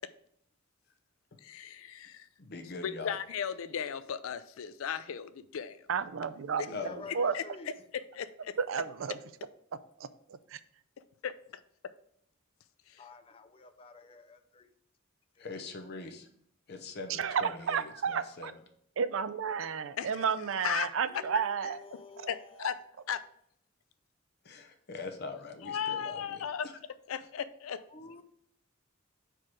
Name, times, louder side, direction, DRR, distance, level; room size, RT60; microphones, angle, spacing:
voice 1, 1.4-2.3 2.8-5.8 7.3-7.4 8.1-8.6 11.2-11.6 20.0-20.2 20.6-21.2 21.9-22.0 22.3-22.8 23.1-23.2 25.7-26.7 27.1-27.8, left 8 dB, 85° left, 14 dB, 0.4 m, -36 dB
voice 2, 2.4-3.2 6.7-7.1 12.9-13.0 15.4-16.3 16.7-18.5 21.6-21.8 24.4-26.7 28.0-28.1, left 3 dB, 55° left, 6 dB, 0.9 m, -43 dB
voice 3, 5.9-6.8 7.1-7.3 8.7-9.2 10.0-10.6 17.1-18.5 19.0-21.8 22.2-22.3, right 6 dB, 70° right, 13 dB, 0.4 m, -32 dB
voice 4, 6.6-7.7 13.0-14.7 15.4-15.5 21.1-22.7 27.9-28.2, left 3 dB, 25° left, 9 dB, 0.5 m, -50 dB
4.8 x 4.6 x 6.0 m, 0.69 s
head